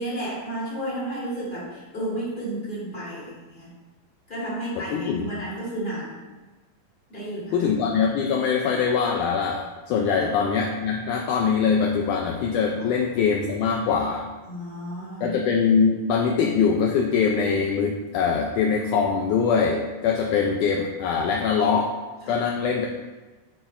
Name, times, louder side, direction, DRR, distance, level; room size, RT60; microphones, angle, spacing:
voice 1, 0.0-3.7 4.3-6.1 7.1-7.7 12.8-12.9 14.4-15.3 22.2-22.4, right 1 dB, 15° left, -7 dB, 2.0 m, -32 dB
voice 2, 4.8-5.4 7.5-14.3 15.2-21.9 22.3-22.9, left 6 dB, 85° left, 1 dB, 1.8 m, -23 dB
9.1 x 4.5 x 4.3 m, 1.2 s
omnidirectional pair, 4.3 m